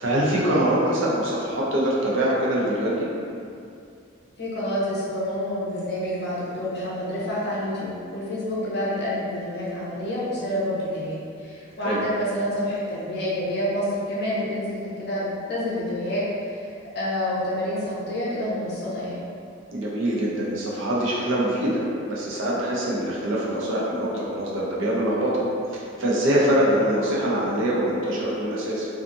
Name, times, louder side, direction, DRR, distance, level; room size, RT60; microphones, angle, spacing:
voice 1, 0.0-3.1 11.8-12.0 19.7-25.4 25.7-28.9, right 1 dB, 70° right, -5 dB, 0.6 m, -24 dB
voice 2, 4.4-16.7 16.9-19.3, left 1 dB, 55° left, -7 dB, 0.7 m, -28 dB
2.6 x 2.4 x 2.5 m, 2.4 s
head